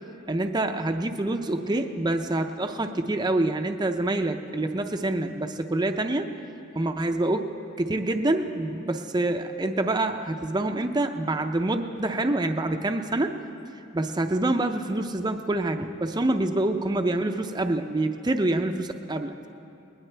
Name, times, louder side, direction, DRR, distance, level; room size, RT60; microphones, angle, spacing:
voice 1, 0.3-6.3 6.7-13.3 13.9-19.5, right 2 dB, 20° right, 6 dB, 0.5 m, -26 dB
20.0 x 20.0 x 3.3 m, 2.7 s
head